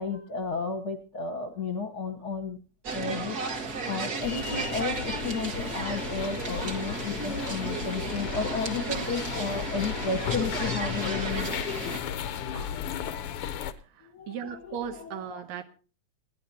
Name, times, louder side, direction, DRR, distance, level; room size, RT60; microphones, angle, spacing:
voice 1, 0.0-2.6 2.9-11.5 12.5-12.8 14.0-15.4, left 4 dB, 55° left, 1.1 m, -33 dB
sound 1, 2.8-12.0, right 4 dB, 40° right, 1.6 m, -34 dB
sound 2, 4.2-13.7, left 9 dB, 75° left, 1.3 m, -35 dB
voice 2, 13.9-15.7, right 8 dB, 75° right, 2.3 m, -37 dB
27.0 x 11.0 x 2.8 m
omnidirectional pair, 3.4 m